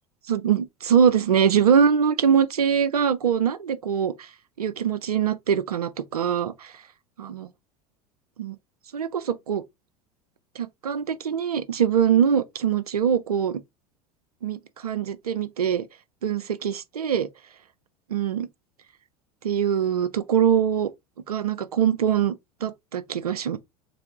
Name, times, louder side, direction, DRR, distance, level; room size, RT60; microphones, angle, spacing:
voice 1, 0.3-4.3 4.6-6.7 7.2-7.5 8.4-8.5 8.9-9.6 10.6-13.6 14.4-15.8 16.2-17.3 18.1-18.5 19.4-20.9 21.3-22.3 22.6-23.6, right 8 dB, 85° right, 0.6 m, -23 dB
3.4 x 3.3 x 3.5 m
hypercardioid pair, 85°, 19 cm